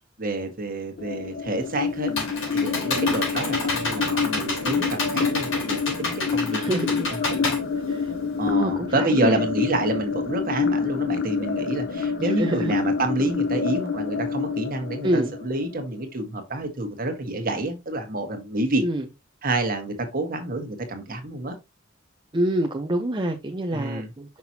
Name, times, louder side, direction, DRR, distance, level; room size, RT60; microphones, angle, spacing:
voice 1, 0.2-2.1 2.5-6.8 7.1-7.5 8.4-18.8 19.4-21.5 23.7-24.1, right 2 dB, 45° right, 1.5 m, -28 dB
sound 1, 1.0-15.9, left 5 dB, 60° left, 0.8 m, -27 dB
Computer keyboard, 1.6-8.5, left 3 dB, 80° left, 4.1 m, -29 dB
voice 2, 6.5-7.1 7.9-8.1 8.5-9.4 12.4-12.7 15.0-15.3 18.8-19.0 22.3-24.4, right 1 dB, 25° right, 0.6 m, -26 dB
5.9 x 5.9 x 2.8 m
head